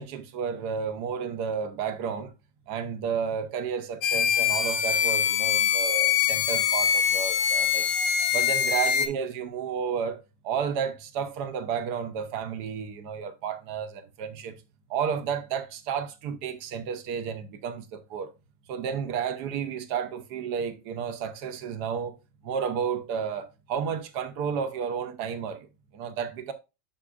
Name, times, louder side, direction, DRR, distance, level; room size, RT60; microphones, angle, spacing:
voice 1, 0.0-2.3 2.7-7.9 8.3-14.6 14.9-18.3 18.7-22.2 22.4-25.6 25.9-26.5, right 7 dB, 70° right, 1.3 m, -32 dB
sound 1, 4.0-9.1, left 8 dB, 60° left, 1.1 m, -24 dB
7.6 x 5.9 x 2.4 m
omnidirectional pair, 1.9 m